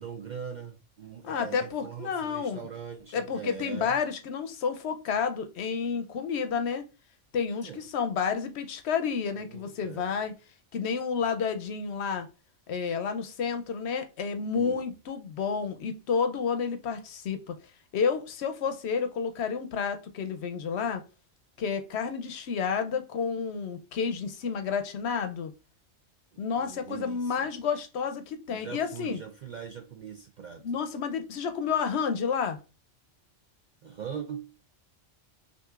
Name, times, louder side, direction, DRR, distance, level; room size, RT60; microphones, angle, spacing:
voice 1, 0.0-4.0 7.6-7.8 9.4-10.1 14.5-14.9 26.5-27.5 28.5-30.6 33.8-34.5, right 7 dB, 60° right, 0.4 m, -41 dB
voice 2, 1.2-2.6 3.1-6.9 7.3-10.3 10.7-12.3 12.7-17.6 17.9-21.0 21.6-25.5 26.4-29.2 30.6-32.6, left 6 dB, 65° left, 0.8 m, -30 dB
5.9 x 2.7 x 2.4 m
omnidirectional pair, 1.3 m